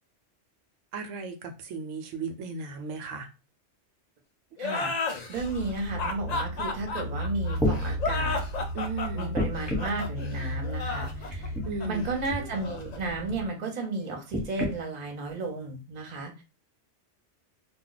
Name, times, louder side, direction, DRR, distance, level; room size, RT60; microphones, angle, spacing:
voice 1, 0.9-3.3 8.7-9.3 11.7-12.1, right 4 dB, 85° right, 0.9 m, -35 dB
sound 1, 4.6-13.9, left 4 dB, 60° left, 0.4 m, -34 dB
voice 2, 4.6-8.4 9.1-11.5 11.8-16.4, right 3 dB, 40° right, 0.8 m, -33 dB
sound 2, 5.4-13.5, equal, 75° left, 0.9 m, -35 dB
sound 3, 7.0-7.1 7.5-7.8 9.3-10.0 11.3-11.7 12.2-12.4 14.3-14.7 15.6-15.7, left 1 dB, ahead, 0.9 m, -29 dB
2.2 x 2.2 x 3.8 m
omnidirectional pair, 1.2 m